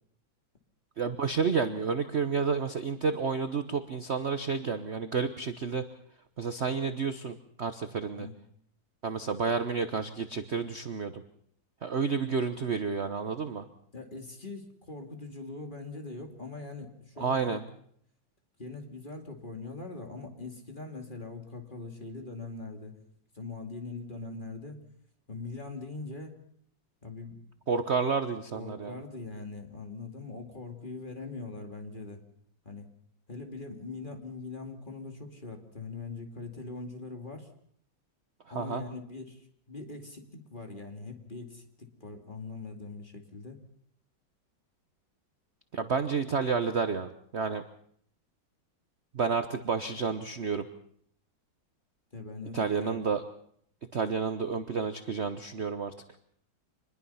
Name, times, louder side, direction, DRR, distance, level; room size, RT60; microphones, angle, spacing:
voice 1, 1.0-5.9 6.4-8.3 9.0-11.2 11.8-13.7 17.2-17.6 27.7-29.0 38.5-38.8 45.7-47.6 49.1-50.7 52.5-53.2 53.9-55.9, right 5 dB, 45° right, 9 dB, 1.0 m, -30 dB
voice 2, 8.0-8.3 13.9-17.6 18.6-23.0 23.3-24.8 25.3-26.4 27.0-27.4 28.5-32.2 32.6-32.9 33.3-37.5 38.5-43.6 52.1-53.0, left 3 dB, 25° left, 4 dB, 2.6 m, -42 dB
26.0 x 21.0 x 5.7 m, 0.65 s
omnidirectional pair, 2.1 m